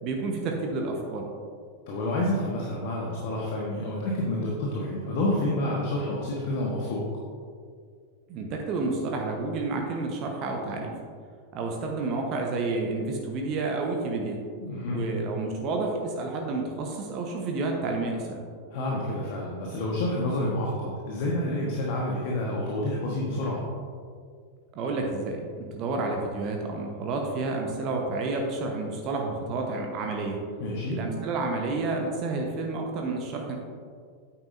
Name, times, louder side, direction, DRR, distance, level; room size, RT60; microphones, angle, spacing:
voice 1, 0.0-1.3 8.3-10.9 11.5-14.4 14.9-18.5 24.7-30.4 30.9-33.6, right 3 dB, 40° right, 1 dB, 1.0 m, -30 dB
voice 2, 1.9-7.0 14.6-15.0 18.7-23.6 30.6-31.0, left 1 dB, 50° left, -3 dB, 1.3 m, -29 dB
9.0 x 8.7 x 2.6 m, 2.1 s
figure-of-eight pair, 90°, 0 cm